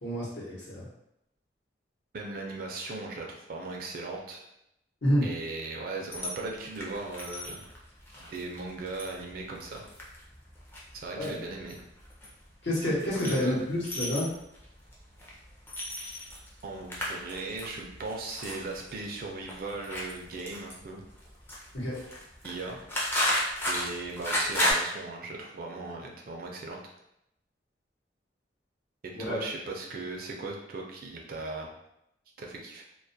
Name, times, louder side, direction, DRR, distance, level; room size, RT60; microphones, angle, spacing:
voice 1, 0.0-0.9 5.0-5.2 11.1-11.3 12.6-14.3 21.7-21.9 29.1-29.4, equal, 70° left, -6 dB, 0.9 m, -29 dB
voice 2, 2.1-4.4 5.2-7.6 8.2-9.8 10.9-11.8 13.3-13.6 16.6-21.0 22.4-22.8 23.6-26.8 29.0-31.7 32.4-32.8, right 3 dB, 50° right, 0 dB, 0.4 m, -38 dB
sound 1, 6.1-24.7, left 1 dB, 10° left, 0.4 m, -35 dB
2.3 x 2.1 x 2.6 m, 0.81 s
head